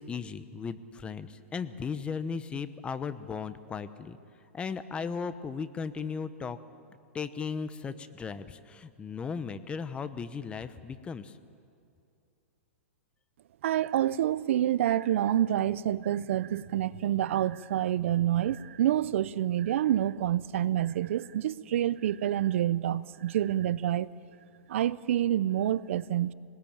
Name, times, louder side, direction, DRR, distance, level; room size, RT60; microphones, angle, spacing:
voice 1, 0.0-4.2 4.5-6.6 7.1-11.4, left 5 dB, 15° left, 12 dB, 0.9 m, -36 dB
voice 2, 13.6-24.1 24.7-26.3, right 12 dB, 65° right, 19 dB, 0.7 m, -27 dB
23.5 x 19.5 x 8.9 m, 2.5 s
hypercardioid pair, 135°, 7 cm